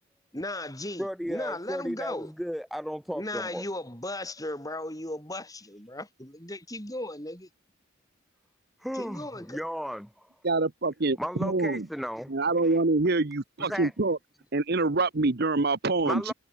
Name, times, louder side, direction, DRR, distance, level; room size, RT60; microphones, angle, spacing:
voice 1, 0.3-2.3 3.1-7.5 8.9-9.6, left 1 dB, 15° left, 7.6 m, -36 dB
voice 2, 1.0-3.6 8.8-10.3 11.2-12.3 12.6-12.8 13.6-13.9 16.0-16.3, equal, ahead, 1.1 m, -34 dB
voice 3, 10.4-11.9 12.3-14.2 14.5-16.3, right 3 dB, 50° right, 1.0 m, -25 dB
head